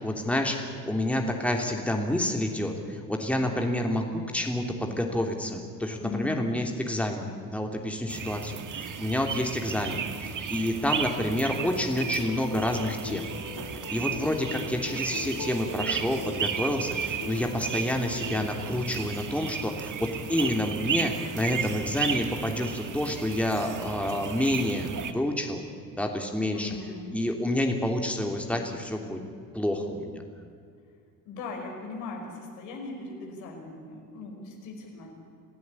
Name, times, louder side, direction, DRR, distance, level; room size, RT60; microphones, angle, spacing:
voice 1, 0.0-13.3 13.6-25.6 25.9-26.7 27.1-29.2 29.5-30.2, left 1 dB, 5° left, 3 dB, 3.2 m, -29 dB
voice 2, 6.0-6.5 26.4-27.2 31.3-35.1, left 3 dB, 70° left, 1 dB, 5.5 m, -39 dB
sound 1, 8.1-25.1, right 7 dB, 40° right, 1.8 m, -34 dB
sound 2, 11.9-18.9, left 5 dB, 45° left, 2.1 m, -41 dB
27.0 x 16.5 x 8.7 m, 2.3 s
hypercardioid pair, 55°, 48 cm